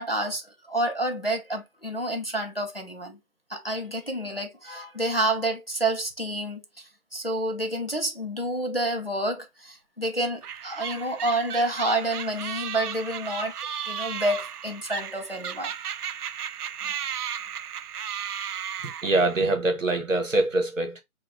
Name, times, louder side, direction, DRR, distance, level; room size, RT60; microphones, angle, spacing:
voice 1, 0.0-3.2 3.5-15.7, right 1 dB, 40° left, 0.5 m, -29 dB
sound 1, 10.4-19.5, right 9 dB, 90° right, 0.5 m, -35 dB
voice 2, 18.8-21.0, right 2 dB, 55° right, 1.2 m, -24 dB
4.2 x 2.3 x 3.5 m
figure-of-eight pair, 180°, 45 cm